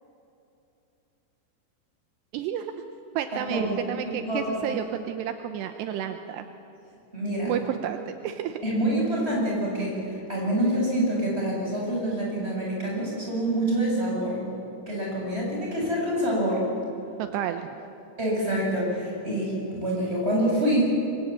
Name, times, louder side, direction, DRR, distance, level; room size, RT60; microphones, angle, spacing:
voice 1, 2.3-2.7 3.2-6.5 7.4-8.6 17.2-17.8, right 10 dB, 80° right, 7 dB, 2.9 m, -31 dB
voice 2, 4.1-4.8 7.1-7.5 8.6-14.4 14.9-16.6 18.2-21.1, right 1 dB, 10° right, -3 dB, 8.0 m, -26 dB
25.0 x 24.5 x 8.9 m, 2.8 s
omnidirectional pair, 5.2 m